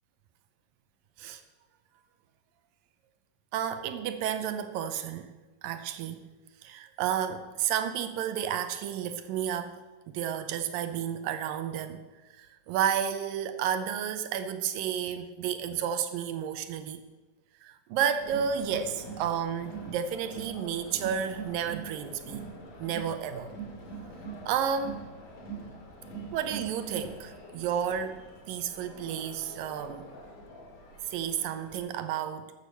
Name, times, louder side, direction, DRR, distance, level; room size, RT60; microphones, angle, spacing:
voice 1, 3.5-5.3 5.6-6.2 6.6-9.8 10.1-12.0 12.4-17.0 17.6-22.4 22.8-23.5 24.5-25.0 26.3-28.2 28.5-30.1 31.1-32.5, right 8 dB, 80° right, 10 dB, 2.3 m, -31 dB
Crowd, 18.2-31.8, right 4 dB, 60° left, 3.6 m, -44 dB
13.0 x 8.4 x 6.7 m, 1.2 s
omnidirectional pair, 4.2 m